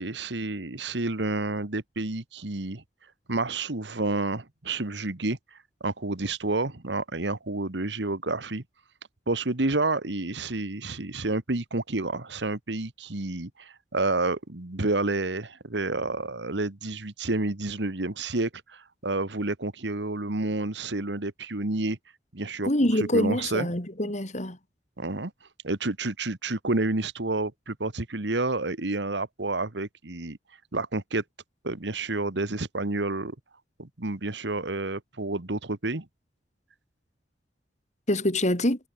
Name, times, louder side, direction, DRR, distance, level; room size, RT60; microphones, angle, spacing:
voice 1, 0.0-2.8 3.3-5.4 5.8-8.6 9.3-22.0 22.3-23.7 25.0-25.3 25.6-30.4 30.7-31.2 31.6-33.3 33.8-36.0, right 2 dB, 75° right, 1.7 m, -29 dB
voice 2, 22.7-24.6 38.1-38.8, left 1 dB, 40° left, 5.0 m, -25 dB
head